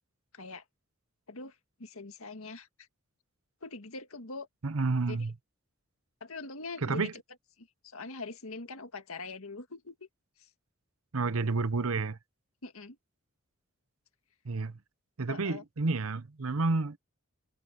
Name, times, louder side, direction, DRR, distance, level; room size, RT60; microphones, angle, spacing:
voice 1, 0.3-0.6 1.3-2.7 3.6-4.5 5.1-5.3 6.2-7.2 7.6-10.1 10.4-10.5 12.6-13.0 15.3-15.6, left 3 dB, 75° left, 1.8 m, -43 dB
voice 2, 4.6-5.3 6.8-7.1 11.1-12.2 14.4-14.8 15.2-17.0, right 3 dB, 75° right, 0.8 m, -30 dB
head